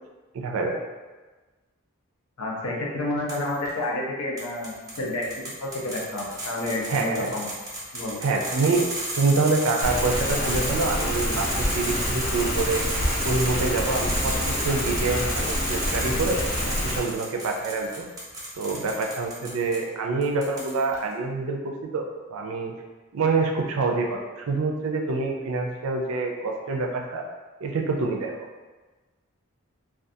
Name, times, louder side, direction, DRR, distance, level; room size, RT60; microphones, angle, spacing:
voice 1, 0.3-0.8 6.9-7.3 8.2-8.9 9.2-12.8 13.2-16.4 16.8-18.0 18.5-22.7 23.1-27.2 27.6-28.3, right 3 dB, 75° right, 1 dB, 0.4 m, -26 dB
voice 2, 2.4-5.3 5.6-7.6 7.9-8.2, left 1 dB, 90° left, -3 dB, 0.6 m, -30 dB
sound 1, 3.3-3.7 4.4-19.8 20.2-21.0, right 1 dB, 15° right, 0.5 m, -33 dB
Rain, 9.8-17.0, left 1 dB, 40° left, 0.4 m, -27 dB
2.4 x 2.3 x 2.6 m, 1.3 s
head